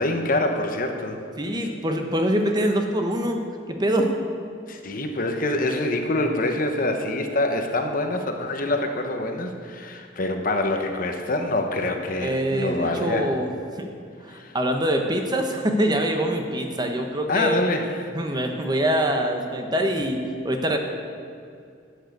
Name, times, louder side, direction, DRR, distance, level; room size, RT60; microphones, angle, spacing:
voice 1, 0.0-1.2 4.7-13.3 14.3-14.6 17.3-17.9, left 2 dB, 45° left, 4 dB, 1.0 m, -25 dB
voice 2, 1.4-4.1 12.2-13.5 13.8-13.9 14.2-17.6 18.1-20.8, right 1 dB, 20° right, 4 dB, 1.0 m, -24 dB
12.0 x 6.6 x 8.0 m, 2.3 s
head